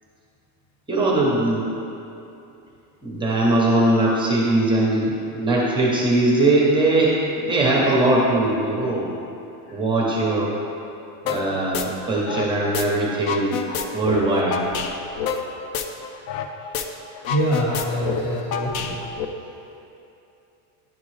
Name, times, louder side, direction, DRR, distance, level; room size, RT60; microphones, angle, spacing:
voice 1, 0.9-1.7 3.0-9.1 9.7-10.5 11.2-13.6 13.9-14.6, right 2 dB, 10° right, -4 dB, 0.6 m, -20 dB
sound 1, 11.3-11.4 11.7-12.8 13.1-16.5 16.7-16.8 17.1-19.2, left 7 dB, 75° left, 0.6 m, -28 dB
voice 2, 17.3-19.0, equal, 35° left, -7 dB, 1.2 m, -25 dB
10.5 x 3.6 x 3.2 m, 2.8 s
cardioid pair, 155°, 43 cm